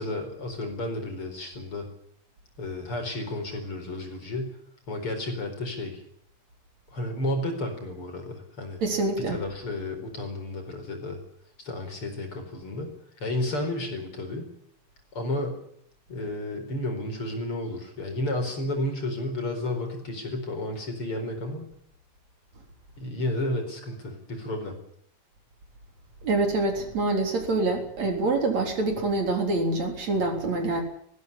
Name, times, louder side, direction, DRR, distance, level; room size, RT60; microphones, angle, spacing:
voice 1, 0.0-1.9 2.6-4.6 4.9-6.0 6.9-8.8 9.3-11.2 11.6-12.9 13.2-14.5 15.1-15.6 16.1-21.6 23.0-24.8, left 1 dB, 40° left, 4 dB, 5.2 m, -32 dB
voice 2, 8.8-9.4 26.2-30.8, right 2 dB, 55° right, 3 dB, 5.0 m, -26 dB
19.5 x 15.5 x 10.0 m, 0.67 s
omnidirectional pair, 3.8 m